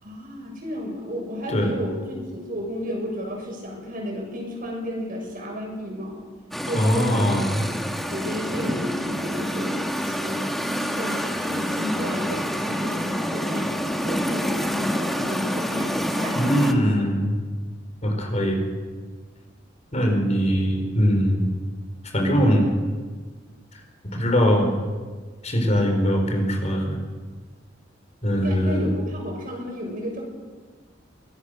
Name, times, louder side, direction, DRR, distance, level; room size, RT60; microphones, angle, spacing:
voice 1, 0.0-6.2 6.7-7.4 8.1-10.4 10.7-13.8 14.0-17.1 28.3-30.2, equal, 50° right, 0 dB, 6.5 m, -32 dB
sound 1, 6.5-16.7, equal, ahead, 1.5 m, -27 dB
voice 2, 6.7-7.6 16.3-17.4 18.0-18.6 19.9-21.5 22.1-22.7 23.7-24.7 25.4-27.0 28.2-28.9, equal, 40° left, 2 dB, 4.6 m, -21 dB
23.5 x 18.0 x 6.6 m, 1.4 s
head